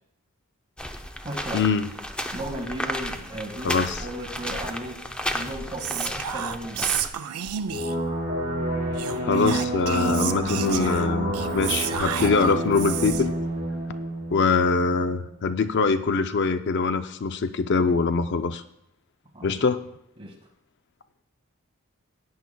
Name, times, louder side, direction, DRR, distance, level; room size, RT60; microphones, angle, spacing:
sound 1, 0.8-7.1, equal, 5° left, 0.6 m, -33 dB
voice 1, 1.2-1.6 2.3-5.0 5.3-6.9 19.3-19.6 20.2-20.3, right 1 dB, 25° right, 0 dB, 1.9 m, -35 dB
voice 2, 3.6-4.0 9.2-13.3 14.3-18.6 19.4-19.8, left 4 dB, 50° left, 9 dB, 0.4 m, -23 dB
Whispering, 5.8-8.1 8.9-13.4, right 10 dB, 90° right, 0.5 m, -31 dB
sound 2, 7.7-15.1, right 1 dB, 50° right, 3.6 m, -28 dB
16.5 x 9.5 x 2.3 m, 0.75 s
head